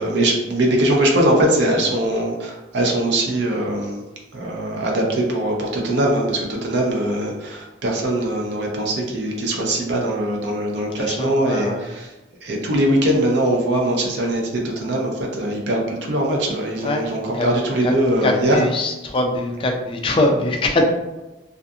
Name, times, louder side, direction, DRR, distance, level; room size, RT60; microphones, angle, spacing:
voice 1, 0.0-4.0 4.3-12.1 12.4-18.6, right 1 dB, 60° right, -1 dB, 0.6 m, -21 dB
voice 2, 11.0-11.8 16.8-17.1 17.3-17.5 17.8-17.9 18.2-20.9, left 1 dB, 30° left, 2 dB, 0.3 m, -22 dB
2.4 x 2.4 x 2.6 m, 1.1 s
head